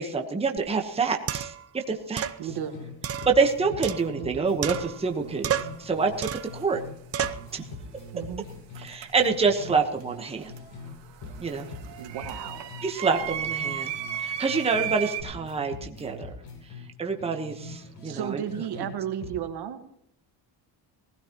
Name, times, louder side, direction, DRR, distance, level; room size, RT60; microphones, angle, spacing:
voice 1, 0.0-2.3 3.3-6.8 7.5-7.6 8.8-10.5 11.4-11.7 12.8-13.9 14.2-16.3 17.0-18.4, right 4 dB, 15° right, 3 dB, 1.2 m, -27 dB
sound 1, 0.6-0.7 1.3-1.7 2.2-2.4 3.0-4.3 4.6-5.1 5.4-5.8 6.2-6.6 7.1-7.5, right 9 dB, 35° right, 0.6 m, -31 dB
voice 2, 2.4-2.8 4.2-4.5 8.1-8.5 12.0-12.7 18.0-19.8, right 9 dB, 65° right, 7 dB, 1.8 m, -34 dB
sound 2, 2.5-2.9 3.2-6.9 7.2-10.9 11.2-14.9 15.2-18.9 19.2-19.4, left 2 dB, 75° left, 5.6 m, -43 dB
sound 3, 4.7-4.8 6.1-6.6 8.7-9.7 10.0-15.2, right 10 dB, 85° right, 2.3 m, -35 dB
19.0 x 16.5 x 3.0 m, 0.74 s
cardioid pair, 155°, 42 cm